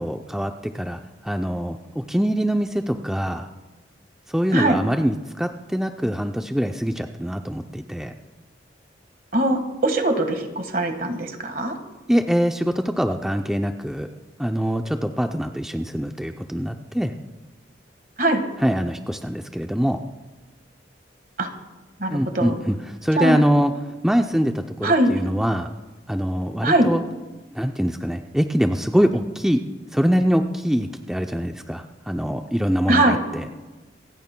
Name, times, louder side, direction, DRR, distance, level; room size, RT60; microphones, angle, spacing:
voice 1, 0.0-3.5 4.3-8.1 12.1-14.1 14.4-17.1 18.6-20.0 22.1-23.7 24.0-25.7 26.1-27.0 27.5-29.6 29.9-33.5, equal, 5° right, 4 dB, 0.4 m, -23 dB
voice 2, 9.3-11.8 18.2-18.4 21.4-21.5 22.0-22.5 23.2-23.4 24.8-25.1 26.6-26.9 32.9-33.2, right 1 dB, 50° right, 6 dB, 1.6 m, -21 dB
27.0 x 15.0 x 2.2 m, 1.2 s
head